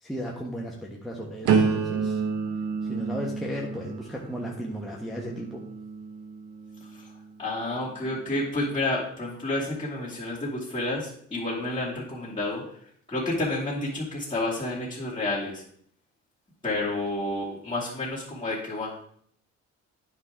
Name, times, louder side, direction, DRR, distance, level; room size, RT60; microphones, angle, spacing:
voice 1, 0.0-2.2 2.9-5.6, equal, ahead, -3 dB, 1.2 m, -35 dB
sound 1, 1.5-7.3 7.9-8.3, right 5 dB, 80° right, 1.3 m, -30 dB
voice 2, 7.4-12.7 13.1-15.6 16.6-18.9, left 2 dB, 15° left, -10 dB, 2.6 m, -30 dB
9.7 x 5.6 x 3.7 m, 0.63 s
cardioid pair, 90°, 30 cm